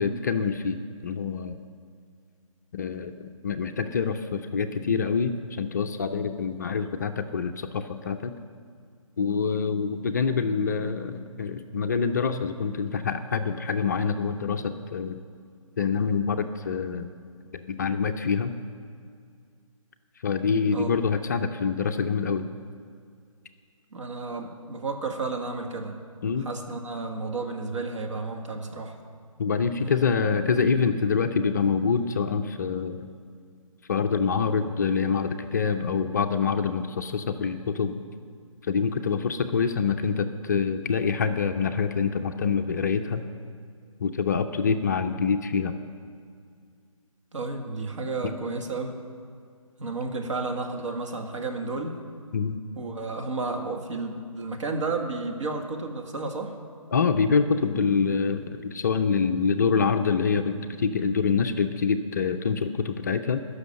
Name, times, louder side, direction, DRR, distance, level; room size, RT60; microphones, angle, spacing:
voice 1, 0.0-1.6 2.7-8.3 9.2-15.2 15.8-17.1 17.5-18.6 20.2-22.5 26.2-26.5 29.4-33.1 33.9-38.0 38.6-43.2 44.0-45.7 52.3-52.6 56.9-63.5, left 5 dB, 30° left, 7 dB, 0.5 m, -26 dB
voice 2, 23.9-26.0 26.4-29.0 29.8-29.9 47.3-49.0 49.8-52.0 52.8-56.6, right 3 dB, 60° right, 2 dB, 1.9 m, -32 dB
13.0 x 6.4 x 9.5 m, 2.2 s
hypercardioid pair, 160°, 18 cm